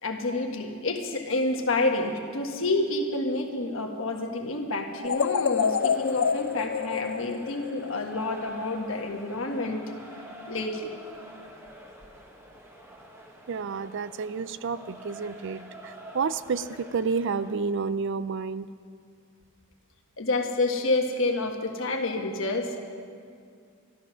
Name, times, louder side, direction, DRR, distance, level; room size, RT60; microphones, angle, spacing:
voice 1, 0.0-9.8 10.5-10.9 20.2-22.8, left 2 dB, 65° left, 3 dB, 1.5 m, -28 dB
sound 1, 5.0-8.2, left 6 dB, 85° left, 0.5 m, -27 dB
sound 2, 5.6-17.6, right 1 dB, 10° right, 1.3 m, -47 dB
voice 2, 13.5-18.7, right 5 dB, 55° right, 15 dB, 0.4 m, -30 dB
14.0 x 13.0 x 6.3 m, 2.2 s
head